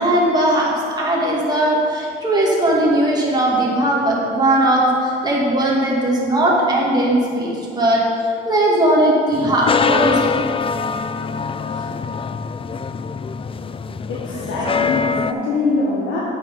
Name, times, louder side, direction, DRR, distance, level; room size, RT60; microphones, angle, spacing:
voice 1, 0.0-10.3 14.8-14.9, right 1 dB, 20° right, -5 dB, 2.2 m, -18 dB
sound 1, 9.3-15.3, left 5 dB, 30° left, 0.4 m, -23 dB
voice 2, 14.1-16.2, left 3 dB, 75° left, -6 dB, 1.5 m, -23 dB
8.3 x 6.3 x 5.3 m, 2.4 s
cardioid pair, 90°, 20 cm